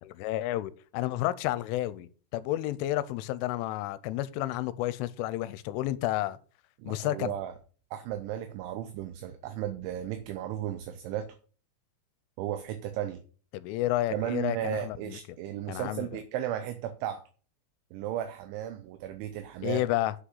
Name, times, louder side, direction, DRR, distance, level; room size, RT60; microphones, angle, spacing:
voice 1, 0.0-6.4 6.9-7.3 13.5-15.2 15.7-16.1 19.6-20.1, left 15 dB, 85° left, 3.1 m, -31 dB
voice 2, 6.8-7.5 7.9-11.4 12.4-13.2 14.1-17.2 17.9-19.8, right 11 dB, 80° right, 3.1 m, -35 dB
8.0 x 6.1 x 8.1 m
omnidirectional pair, 5.7 m